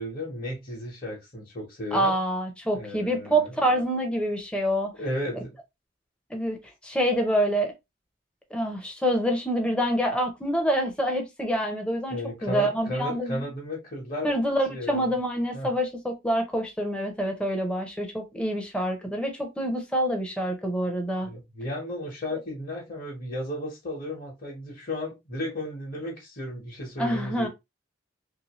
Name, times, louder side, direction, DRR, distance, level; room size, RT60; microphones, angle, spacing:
voice 1, 0.0-2.1 2.7-3.5 5.0-5.5 12.1-14.3 14.7-15.1 15.5-15.7 21.2-27.5, left 1 dB, 45° left, 1.1 m, -34 dB
voice 2, 1.9-4.9 6.3-6.6 6.8-7.7 8.5-12.2 12.4-13.5 14.2-21.3 27.0-27.5, equal, 5° left, 0.6 m, -26 dB
3.0 x 2.7 x 2.9 m
head